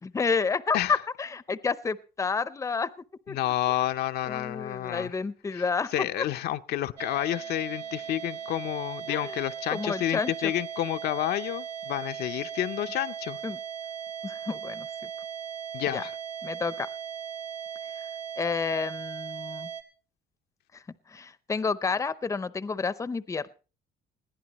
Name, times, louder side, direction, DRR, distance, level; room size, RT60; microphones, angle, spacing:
voice 1, 0.0-2.9 3.3-3.4 4.2-6.3 9.1-9.4 9.7-10.5 13.4-13.6 14.2-14.9 15.9-16.0 16.4-16.9 18.4-19.7 20.7-20.8 21.1-23.5, left 5 dB, 20° left, 17 dB, 0.6 m, -30 dB
voice 2, 3.3-5.1 5.5-5.6 5.9-13.4 15.7-16.1, left 13 dB, 70° left, 9 dB, 0.6 m, -30 dB
sound 1, 7.0-19.8, right 8 dB, 75° right, 2.2 m, -38 dB
21.0 x 15.0 x 3.0 m, 0.36 s
cardioid pair, 110°, 17 cm